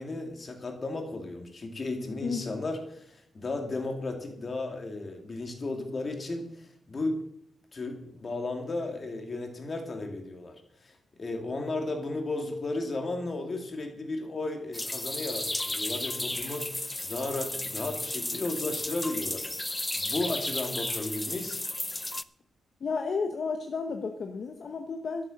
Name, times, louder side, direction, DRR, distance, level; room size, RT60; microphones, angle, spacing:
voice 1, 0.0-7.2 7.7-10.5 10.8-19.5 19.9-21.6, left 2 dB, 30° left, 3 dB, 2.4 m, -34 dB
voice 2, 2.2-2.5 22.8-25.2, left 4 dB, 50° left, 5 dB, 1.0 m, -32 dB
sound 1, 14.7-22.2, left 1 dB, 10° left, 0.4 m, -34 dB
12.0 x 8.7 x 6.5 m, 0.68 s
wide cardioid pair, 165°, 0 cm